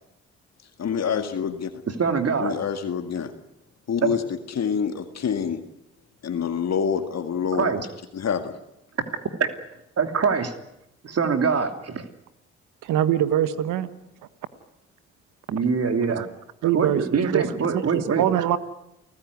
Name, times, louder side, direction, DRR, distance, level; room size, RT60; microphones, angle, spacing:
voice 1, 0.8-1.7 2.4-3.3 3.9-4.2 4.6-5.6 6.2-7.7 8.1-8.5, left 7 dB, 55° left, 7 dB, 2.0 m, -26 dB
voice 2, 1.9-2.5 4.0-4.1 7.6-7.9 10.0-10.5 11.0-12.1 15.5-16.2 16.6-18.3, right 5 dB, 50° right, 7 dB, 2.9 m, -24 dB
voice 3, 12.8-13.9 16.2-16.3 16.6-17.4 17.7-18.6, right 11 dB, 70° right, 13 dB, 1.5 m, -23 dB
29.0 x 15.0 x 9.6 m, 0.87 s
hypercardioid pair, 45°, 32 cm